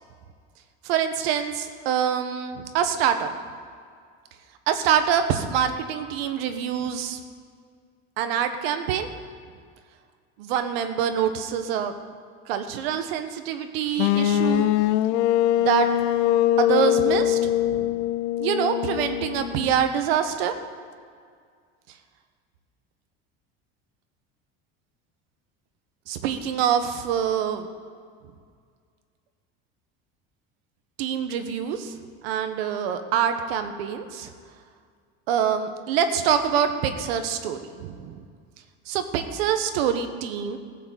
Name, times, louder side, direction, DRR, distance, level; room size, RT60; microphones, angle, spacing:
voice 1, 0.8-3.3 4.7-7.2 8.2-9.1 10.4-11.9 12.5-14.7 15.6-15.9 16.6-17.9 18.4-20.5 26.1-27.7 31.0-31.9 32.2-34.3 35.3-38.2 38.9-40.6, right 8 dB, 85° right, 8 dB, 1.2 m, -25 dB
sound 1, 14.0-19.9, left 12 dB, 75° left, 0.6 m, -23 dB
15.5 x 5.9 x 7.6 m, 2.1 s
supercardioid pair, 105°, 30 cm